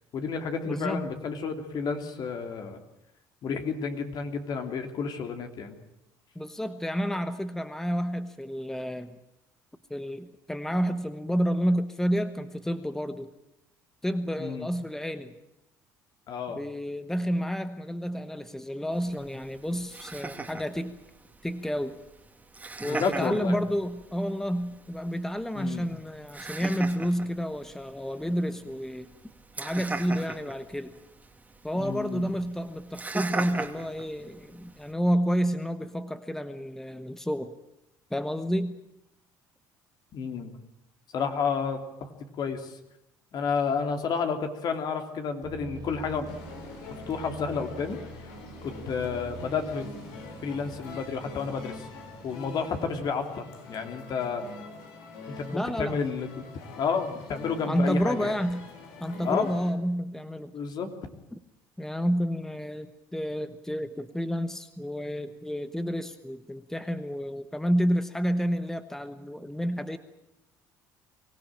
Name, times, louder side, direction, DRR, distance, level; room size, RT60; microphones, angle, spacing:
voice 1, 0.1-2.8 3.4-5.8 14.4-14.7 16.3-16.6 22.8-23.6 25.5-25.9 31.7-32.3 40.1-40.6 41.1-42.1 42.4-42.8 43.3-46.4 46.9-48.0 48.6-49.9 50.4-51.9 52.2-54.5 55.4-56.4 56.8-58.4 59.2-59.5 60.5-60.9, left 5 dB, 55° left, 6 dB, 3.0 m, -31 dB
voice 2, 0.7-1.1 6.3-9.2 9.9-13.3 14.0-15.3 16.5-21.0 21.4-22.0 22.8-29.1 29.6-31.0 31.6-37.5 38.1-38.7 55.5-56.0 57.7-58.6 59.0-60.5 61.3-61.4 61.8-70.0, equal, 5° left, 10 dB, 1.2 m, -30 dB
Laughter, 18.9-34.9, right 3 dB, 20° right, 2.4 m, -40 dB
sound 1, 45.4-53.4, right 6 dB, 55° right, 1.8 m, -47 dB
sound 2, 46.2-59.7, left 3 dB, 85° left, 4.0 m, -44 dB
24.5 x 16.5 x 8.9 m, 0.84 s
supercardioid pair, 85°, 8 cm